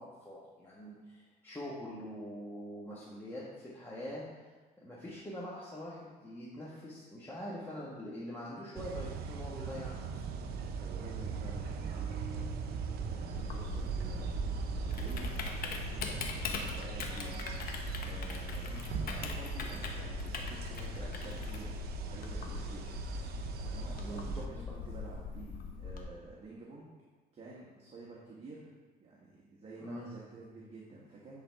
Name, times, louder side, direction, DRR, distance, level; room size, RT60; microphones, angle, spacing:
voice 1, 0.0-4.2 4.8-10.2 18.6-18.9 20.9-21.3 23.9-24.4 29.8-30.1, equal, 15° left, -7 dB, 1.5 m, -44 dB
sound 1, 8.7-24.5, right 6 dB, 65° right, 0.8 m, -39 dB
voice 2, 10.7-12.5 13.1-23.0 23.5-26.9 27.3-28.7 29.0-31.4, right 3 dB, 35° right, -4 dB, 1.4 m, -50 dB
Typing, 13.3-26.0, left 6 dB, 60° left, 1.1 m, -41 dB
10.5 x 4.0 x 4.7 m, 1.3 s
cardioid pair, 110°, 17 cm